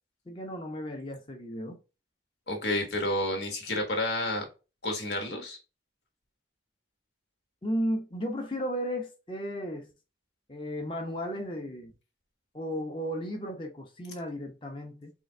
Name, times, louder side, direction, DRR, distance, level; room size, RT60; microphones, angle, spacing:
voice 1, 0.3-1.8 7.6-9.9 10.5-11.9 12.5-15.1, equal, 30° left, 0.9 m, -34 dB
voice 2, 2.5-4.5 4.8-5.6, left 1 dB, 75° left, 1.4 m, -30 dB
3.8 x 2.5 x 4.3 m
head